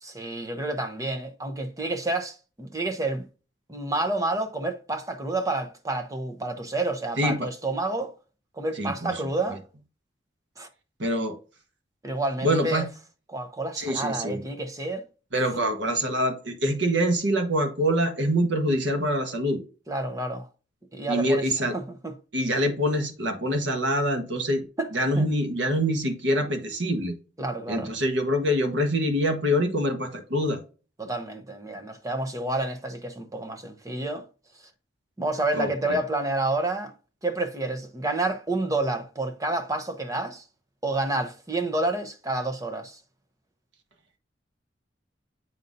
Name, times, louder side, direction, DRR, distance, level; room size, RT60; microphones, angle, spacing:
voice 1, 0.0-3.2 3.7-8.1 8.6-9.6 10.6-10.7 12.0-12.8 13.3-15.0 19.9-20.5 20.9-21.4 21.7-22.1 24.8-24.9 25.2-25.3 27.4-27.9 31.0-34.2 35.2-36.9 37.2-40.4 40.8-43.0, right 2 dB, 20° right, 0.8 m, -29 dB
voice 2, 7.2-7.5 8.8-9.1 11.0-11.4 12.4-12.9 13.8-14.4 15.3-19.6 21.1-21.7 22.3-24.6 24.9-27.1 27.7-30.6 35.5-36.0, equal, 80° right, 1.3 m, -25 dB
7.9 x 5.4 x 2.6 m
head